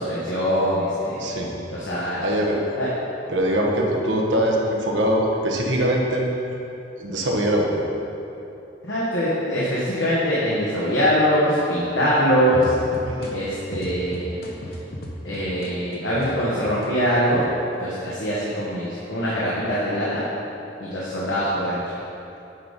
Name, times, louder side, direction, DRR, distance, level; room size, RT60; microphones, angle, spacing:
voice 1, 0.0-1.3 1.7-2.3 2.7-2.9 8.8-12.7 13.3-14.4 15.2-17.4 17.8-20.2 20.8-21.8, equal, 80° left, -8 dB, 1.3 m, -23 dB
voice 2, 1.2-1.5 2.2-2.6 3.3-6.4 7.0-7.8 13.1-13.3, right 1 dB, 85° right, -1 dB, 1.0 m, -22 dB
sound 1, 12.5-16.9 17.3-18.1, left 1 dB, 55° left, 0.8 m, -35 dB
8.7 x 4.1 x 5.1 m, 2.9 s
head